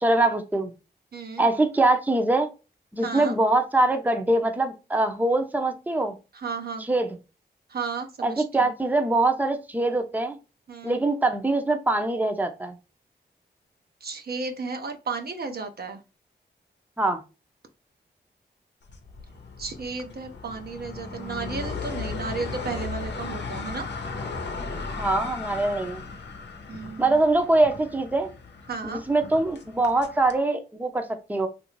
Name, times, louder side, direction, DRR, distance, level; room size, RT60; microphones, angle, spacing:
voice 1, 0.0-0.7 1.4-2.5 2.9-6.1 6.9-7.1 8.2-10.4 10.8-12.7 17.0-17.2 25.0-26.0 27.0-28.3 28.8-31.5, right 2 dB, 10° right, 0.6 m, -23 dB
voice 2, 1.1-1.4 3.0-3.3 6.3-6.9 7.7-8.7 10.7-11.0 14.0-16.0 19.6-23.9 26.7-27.2 28.7-29.0, right 4 dB, 60° right, 0.7 m, -33 dB
sound 1, 18.9-30.4, left 4 dB, 75° left, 0.7 m, -36 dB
3.1 x 2.6 x 3.1 m
cardioid pair, 50°, 18 cm